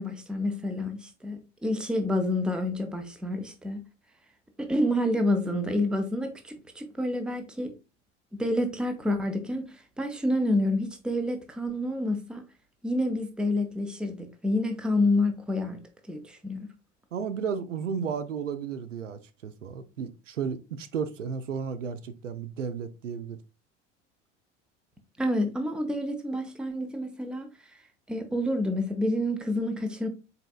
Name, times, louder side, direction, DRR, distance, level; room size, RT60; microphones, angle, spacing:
voice 1, 0.0-3.8 4.6-7.7 8.4-12.4 12.8-15.8 16.1-16.7 25.2-27.5 28.1-30.1, left 1 dB, ahead, 0.5 m, -28 dB
voice 2, 17.1-23.4, right 6 dB, 80° right, 0.5 m, -33 dB
4.1 x 3.9 x 2.3 m
figure-of-eight pair, 75°, 37 cm